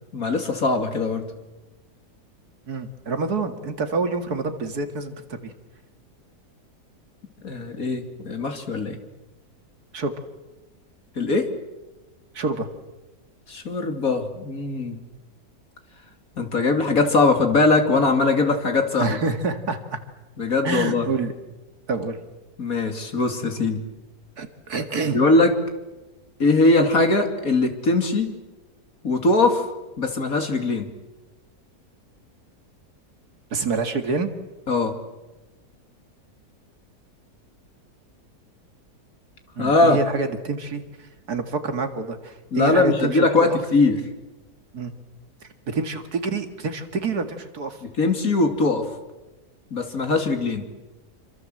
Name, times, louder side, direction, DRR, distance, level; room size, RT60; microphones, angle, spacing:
voice 1, 0.1-1.2 7.4-9.0 11.2-11.5 13.5-15.0 16.4-19.2 20.4-21.1 22.6-23.8 25.0-25.6 26.4-28.3 29.0-29.6 30.0-30.9 34.7-34.9 39.6-40.0 42.5-44.0 47.8-48.9 49.7-50.7, left 3 dB, 60° left, 6 dB, 3.1 m, -21 dB
voice 2, 2.7-5.5 9.9-10.1 12.3-12.7 19.0-20.0 20.6-21.3 21.9-22.2 24.4-25.2 33.5-34.3 39.6-40.8 41.3-43.6 44.7-44.9 45.7-47.8, right 4 dB, 70° right, 7 dB, 2.6 m, -27 dB
27.5 x 25.5 x 7.8 m, 1.1 s
omnidirectional pair, 1.7 m